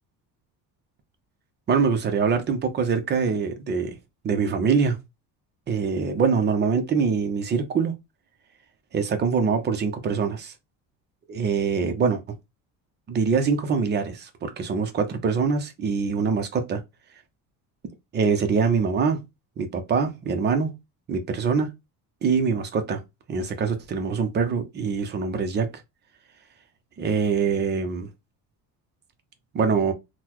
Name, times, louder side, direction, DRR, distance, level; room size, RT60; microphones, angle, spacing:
voice 1, 1.7-4.0 4.2-5.0 5.7-7.9 8.9-10.5 11.3-12.2 13.1-16.8 18.1-19.2 19.6-20.7 21.1-21.7 22.2-23.0 23.3-25.7 27.0-28.1 29.5-29.9, right 5 dB, 30° right, 0.6 m, -24 dB
3.8 x 2.1 x 2.9 m
cardioid pair, 160°, 37 cm